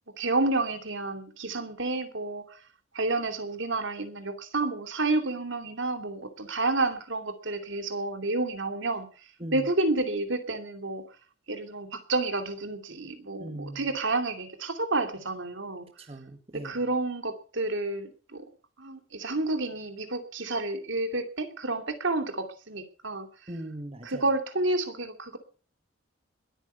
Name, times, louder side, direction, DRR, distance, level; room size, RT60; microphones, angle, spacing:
voice 1, 0.2-2.6 2.9-9.1 9.5-11.0 11.5-15.9 16.5-18.4 18.8-23.3 24.0-25.4, right 2 dB, 75° right, 2.7 m, -30 dB
voice 2, 13.4-13.9 16.0-16.8 23.5-24.2, right 1 dB, 30° right, 1.5 m, -39 dB
21.0 x 9.0 x 6.8 m
head